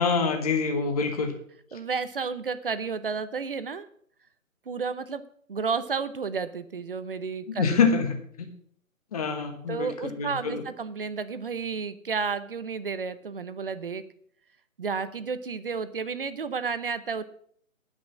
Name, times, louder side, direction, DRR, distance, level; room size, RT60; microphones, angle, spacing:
voice 1, 0.0-1.3 7.5-8.5 9.1-10.6, left 5 dB, 25° left, 5 dB, 1.2 m, -26 dB
voice 2, 1.7-3.9 4.7-5.2 5.5-7.8 9.7-14.0 14.8-17.2, right 5 dB, 40° right, 13 dB, 0.7 m, -31 dB
10.5 x 6.2 x 7.4 m, 0.62 s
hypercardioid pair, 165°, 42 cm